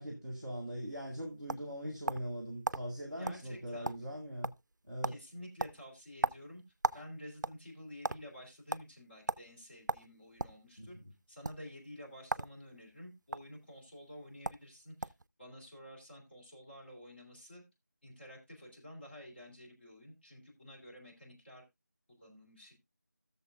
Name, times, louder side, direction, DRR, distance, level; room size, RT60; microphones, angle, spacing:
voice 1, 0.0-4.5 4.9-5.2 10.8-10.9, equal, 10° left, 0.7 m, -41 dB
sound 1, 0.9-2.3 2.6-2.8 3.2-3.4 3.7-4.2 4.4-4.7 5.0-5.2 5.6-7.0 7.3-8.2 8.7-8.8 9.3-9.4 9.9-10.6 11.3-11.5 12.2-12.5 12.8-13.4 14.1-14.2 14.4-14.6 15.0-15.3, right 2 dB, 80° right, 0.4 m, -35 dB
voice 2, 3.2-4.0 5.0-6.6 6.9-11.0 11.3-15.1 15.4-17.6 18.0-21.6 22.1-22.8, equal, 35° left, 3.2 m, -51 dB
16.5 x 6.8 x 2.3 m
figure-of-eight pair, 170°, 10 cm